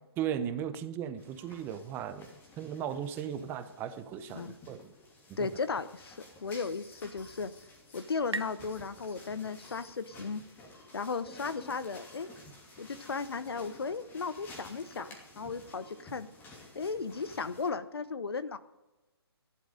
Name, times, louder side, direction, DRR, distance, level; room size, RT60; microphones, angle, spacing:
voice 1, 0.2-4.8 5.4-5.5, right 9 dB, 15° right, 11 dB, 0.8 m, -37 dB
sound 1, 1.2-17.7, left 2 dB, 15° left, 2.6 m, -53 dB
voice 2, 5.4-7.5 7.9-10.4 10.9-12.3 12.8-15.1 15.4-16.3 16.7-18.6, left 4 dB, 70° left, 14 dB, 0.9 m, -35 dB
sound 2, 6.9-10.2, right 2 dB, 85° right, 0.8 m, -45 dB
14.5 x 11.5 x 5.2 m, 1.0 s
figure-of-eight pair, 135°, 14 cm